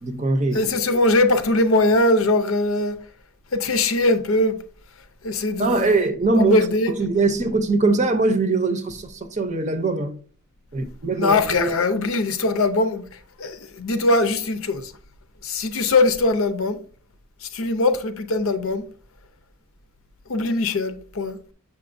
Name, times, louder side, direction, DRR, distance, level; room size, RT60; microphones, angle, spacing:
voice 1, 0.0-0.7 5.6-6.6 7.0-10.2 10.7-11.8, right 3 dB, 35° right, 0.6 m, -22 dB
voice 2, 0.5-3.0 3.5-4.6 5.2-6.0 6.4-6.9 11.2-13.1 13.4-14.9 15.4-16.8 17.4-18.8 20.3-21.4, left 2 dB, 70° left, 0.7 m, -21 dB
6.8 x 5.8 x 2.6 m
head